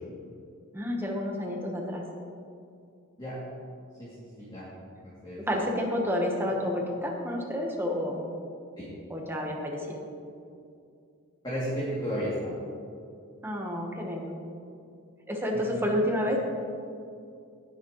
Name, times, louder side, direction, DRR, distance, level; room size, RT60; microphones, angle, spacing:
voice 1, 0.7-2.0 5.5-8.2 9.1-10.0 13.4-14.4 15.3-16.4, left 1 dB, 10° right, 0 dB, 1.1 m, -30 dB
voice 2, 5.0-5.4 8.8-8.9 11.4-12.5 15.5-15.9, equal, 20° left, -10 dB, 2.5 m, -33 dB
18.5 x 7.3 x 3.1 m, 2.4 s
head